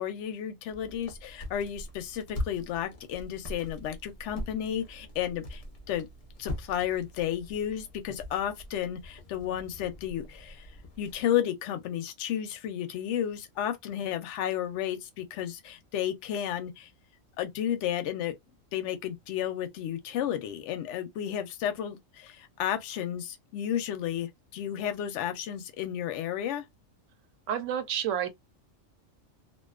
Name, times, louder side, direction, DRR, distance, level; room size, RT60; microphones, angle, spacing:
voice 1, 0.0-5.6 5.9-6.1 6.4-10.7 11.0-16.9 17.4-18.4 18.7-26.7, left 10 dB, 70° left, 0.8 m, -32 dB
sound 1, 0.7-11.2, left 1 dB, 45° left, 0.5 m, -42 dB
voice 2, 27.5-28.3, right 9 dB, 70° right, 0.9 m, -29 dB
2.5 x 2.2 x 2.3 m
omnidirectional pair, 1.4 m